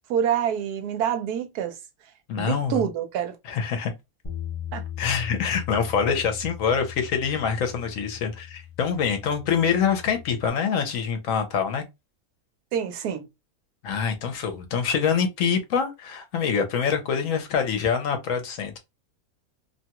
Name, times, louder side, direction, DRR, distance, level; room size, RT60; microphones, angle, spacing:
voice 1, 0.1-1.8 2.4-3.4 4.7-4.8 12.7-13.3, right 9 dB, 85° right, 1.1 m, -26 dB
voice 2, 2.3-2.9 3.5-3.9 5.0-11.8 13.8-18.8, left 6 dB, 65° left, 0.9 m, -25 dB
Bass guitar, 4.2-10.5, left 9 dB, 30° left, 0.6 m, -38 dB
2.7 x 2.2 x 2.8 m
omnidirectional pair, 1.6 m